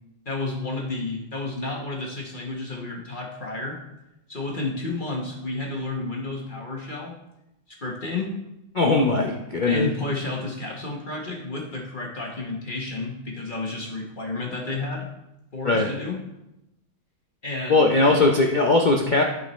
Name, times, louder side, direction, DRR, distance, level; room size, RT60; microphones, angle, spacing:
voice 1, 0.2-3.8 4.3-7.1 7.7-8.3 9.6-15.1 15.5-16.2 17.4-18.4, left 2 dB, 35° left, -1 dB, 1.1 m, -31 dB
voice 2, 8.8-9.9 15.6-15.9 17.7-19.2, left 3 dB, 60° left, 1 dB, 0.4 m, -19 dB
11.5 x 5.4 x 3.1 m, 0.91 s
omnidirectional pair, 1.8 m